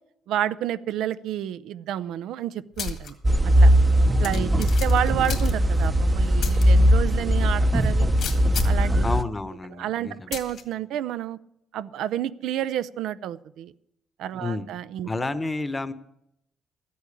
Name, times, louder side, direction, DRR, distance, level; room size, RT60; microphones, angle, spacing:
voice 1, 0.3-3.1 3.6-3.7 4.2-8.1 8.6-9.1 9.8-11.4 11.7-13.7 14.2-15.1, right 11 dB, 85° right, 15 dB, 0.5 m, -30 dB
sound 1, 2.8-3.1 3.5-3.6 4.2-5.9 6.4-6.6 7.1-7.2 8.2-8.9 10.3-10.6, left 6 dB, 65° left, 2.1 m, -31 dB
sound 2, 3.2-9.2, equal, 20° right, 0.7 m, -19 dB
voice 2, 4.3-4.6 9.0-10.4 14.4-14.7 15.0-15.9, left 3 dB, 20° left, 13 dB, 0.9 m, -30 dB
13.5 x 8.5 x 8.5 m, 0.81 s
cardioid pair, 90°, 0 cm